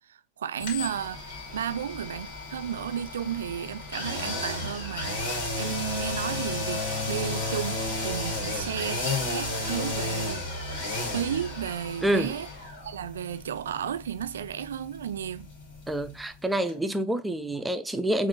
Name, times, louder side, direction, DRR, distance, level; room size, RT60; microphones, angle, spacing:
voice 1, 0.1-5.2 5.6-9.0 9.3-10.4 11.1-12.5 12.8-15.5, right 9 dB, 65° right, 0.4 m, -33 dB
sound 1, 0.6-16.4 16.7-16.8, left 2 dB, 55° left, 2.4 m, -33 dB
voice 2, 12.0-12.3 15.9-18.3, right 1 dB, 5° right, 0.4 m, -27 dB
7.1 x 2.5 x 2.7 m
figure-of-eight pair, 90°, 0 cm